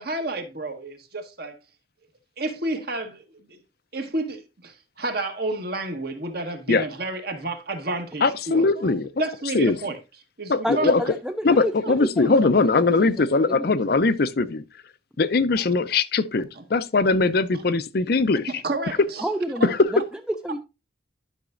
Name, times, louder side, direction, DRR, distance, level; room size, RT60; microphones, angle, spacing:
voice 1, 0.0-1.6 2.4-3.6 3.9-8.9 9.2-10.0 10.4-10.9 15.6-15.7 16.5-16.6 17.5-17.6 18.6-19.3, right 2 dB, 55° right, 1.4 m, -30 dB
voice 2, 8.2-9.1 9.5-9.8 10.5-11.0 11.4-14.6 15.2-18.5 19.6-19.7, left 3 dB, 50° left, 0.5 m, -21 dB
voice 3, 10.6-12.4 12.8-13.8 19.2-19.8 20.4-20.6, equal, 5° right, 0.4 m, -30 dB
11.5 x 5.9 x 2.5 m
head